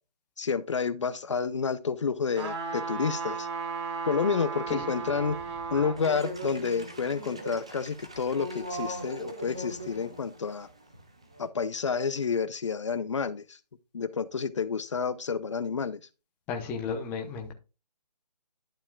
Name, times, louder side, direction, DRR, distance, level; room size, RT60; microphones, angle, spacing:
voice 1, 0.4-3.5 4.1-5.4 5.7-10.7 11.4-13.6 13.9-16.0, left 5 dB, 45° left, 0.7 m, -29 dB
sound 1, 2.3-6.0 6.5-6.6, right 5 dB, 40° right, 3.6 m, -35 dB
sound 2, 6.0-11.4, right 1 dB, 10° right, 0.4 m, -40 dB
voice 2, 16.5-17.5, left 5 dB, 10° left, 0.8 m, -33 dB
11.5 x 7.0 x 2.3 m
figure-of-eight pair, 155°, 21 cm